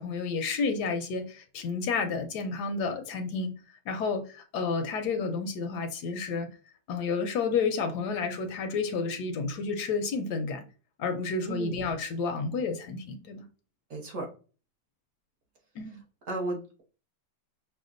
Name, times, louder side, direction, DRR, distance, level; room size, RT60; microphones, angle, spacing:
voice 1, 0.0-3.5 3.9-6.5 6.9-10.6 11.0-13.4 15.8-16.0, left 4 dB, 75° left, 1.1 m, -30 dB
voice 2, 11.5-11.8 13.9-14.3 16.3-16.8, right 2 dB, 55° right, 1.2 m, -34 dB
5.8 x 2.2 x 2.5 m
omnidirectional pair, 1.9 m